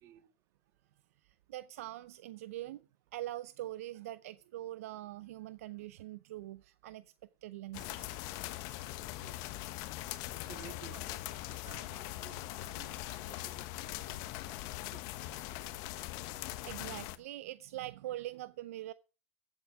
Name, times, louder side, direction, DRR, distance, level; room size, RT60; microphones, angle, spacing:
voice 1, 1.2-2.8 3.1-7.1 7.4-8.2 12.8-13.1 14.1-14.2 16.6-18.9, right 15 dB, 70° right, 0.5 m, -43 dB
sound 1, 7.7-17.2, left 16 dB, 50° left, 1.1 m, -41 dB
voice 2, 9.0-9.4 10.4-15.0 15.3-15.4 15.7-15.8, right 10 dB, 40° right, 1.7 m, -56 dB
15.0 x 8.2 x 4.7 m
hypercardioid pair, 115°, 8 cm